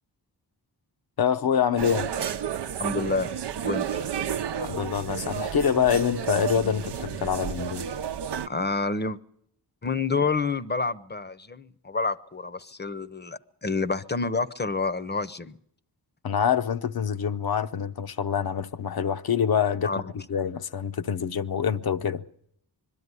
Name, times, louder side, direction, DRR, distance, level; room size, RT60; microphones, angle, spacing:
voice 1, 1.2-2.1 4.6-7.9 16.2-22.2, left 8 dB, 65° left, 0.8 m, -26 dB
sound 1, 1.8-8.5, right 8 dB, 90° right, 0.7 m, -31 dB
voice 2, 2.8-3.3 3.6-3.9 8.5-9.2 9.8-15.6 19.8-20.0, left 4 dB, 25° left, 0.7 m, -28 dB
22.0 x 12.5 x 9.6 m
wide cardioid pair, 95°, 40 cm